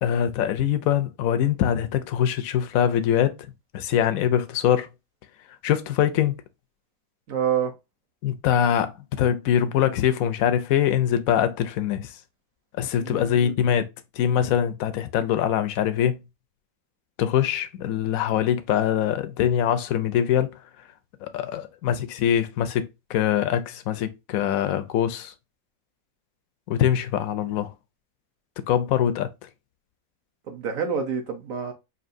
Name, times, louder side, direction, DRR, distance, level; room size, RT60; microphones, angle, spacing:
voice 1, 0.0-3.4 3.7-4.9 5.6-6.4 8.2-8.9 9.2-12.2 12.8-13.8 14.1-16.2 17.2-20.5 21.2-25.3 26.7-27.7 28.7-29.3, left 10 dB, 70° left, 0.8 m, -23 dB
voice 2, 7.3-7.7 13.0-13.6 30.5-31.7, right 7 dB, 55° right, 1.2 m, -27 dB
5.5 x 2.7 x 2.6 m
omnidirectional pair, 2.0 m